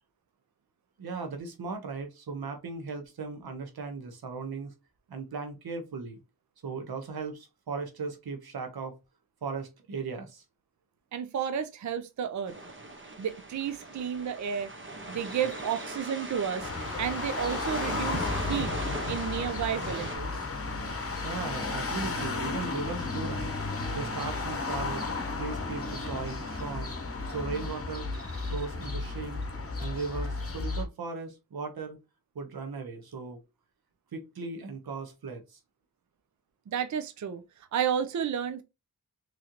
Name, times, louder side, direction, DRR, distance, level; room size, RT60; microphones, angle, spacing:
voice 1, 1.0-4.7 5.1-6.2 6.6-9.0 9.4-10.4 21.2-23.5 23.9-26.9 27.3-28.1 28.5-29.5 29.8-32.0 32.3-33.4 34.1-35.6, right 4 dB, 90° right, 1.0 m, -37 dB
voice 2, 11.1-12.6 13.2-14.7 15.1-16.7 17.0-18.7 19.1-20.5 36.7-38.6, right 8 dB, 55° right, 0.5 m, -32 dB
sound 1, 12.5-20.2, right 2 dB, 35° right, 1.0 m, -40 dB
sound 2, 15.2-20.2 20.5-21.0 21.4-21.9 22.3-22.7 23.1-23.6 23.9-24.5 24.8-25.3 25.6-26.1 26.4-27.0 27.3-27.8 28.1-28.7, right 2 dB, 10° right, 1.7 m, -48 dB
sound 3, 16.6-30.9, left 3 dB, 40° left, 0.9 m, -33 dB
3.8 x 3.2 x 2.8 m
cardioid pair, 60°, 36 cm